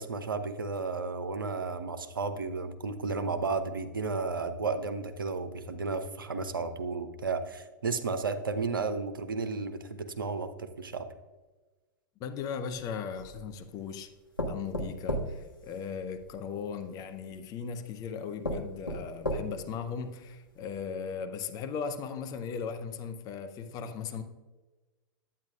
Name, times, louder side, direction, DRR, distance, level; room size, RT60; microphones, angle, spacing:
voice 1, 0.0-11.1, right 4 dB, 80° right, 9 dB, 0.8 m, -33 dB
voice 2, 12.2-14.1 14.5-24.2, left 6 dB, 35° left, 8 dB, 0.8 m, -37 dB
sound 1, 12.7-13.6 14.4-16.3 17.3-17.4 18.0-18.1 18.4-19.8 20.3-20.4 20.7-20.8, equal, 80° left, 1.3 m, -35 dB
9.8 x 8.9 x 2.4 m, 1.2 s
figure-of-eight pair, 100°, 11 cm